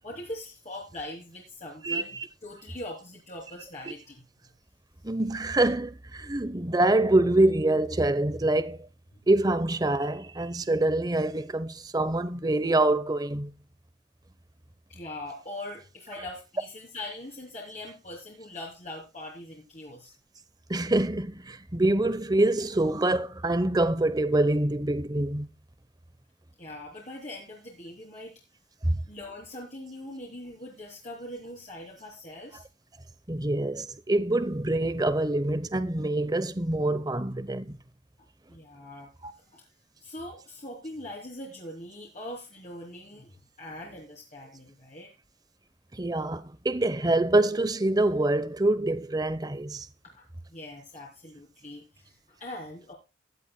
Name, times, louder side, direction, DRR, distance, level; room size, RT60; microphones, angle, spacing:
voice 1, 0.0-2.1 2.4-4.2 14.9-20.1 26.6-28.3 29.1-32.6 38.5-39.1 39.5-39.6 40.0-45.1 50.1-50.2 50.5-52.9, left 1 dB, 35° left, 3.1 m, -42 dB
voice 2, 1.8-2.3 5.0-8.9 9.3-13.5 20.7-25.5 28.8-29.0 33.3-37.8 39.2-39.3 45.9-49.9, right 2 dB, 20° right, 0.8 m, -25 dB
16.0 x 11.5 x 2.2 m
head